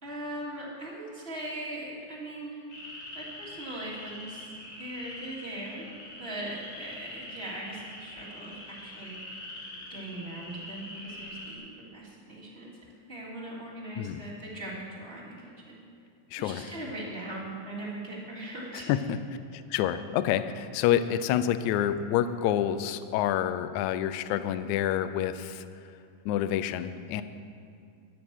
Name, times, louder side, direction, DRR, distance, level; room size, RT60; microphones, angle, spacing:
voice 1, 0.0-2.6 3.1-4.5 4.8-5.9 6.2-9.4 9.9-12.7 13.1-15.8 16.4-18.9, right 1 dB, 15° right, -6 dB, 2.7 m, -40 dB
sound 1, 2.7-11.5, left 1 dB, 65° left, 4.0 m, -44 dB
voice 2, 16.3-16.7 18.9-19.2 19.5-25.7 26.3-27.2, left 10 dB, 80° left, 12 dB, 1.7 m, -28 dB
12.5 x 12.0 x 6.3 m, 2.4 s
omnidirectional pair, 4.0 m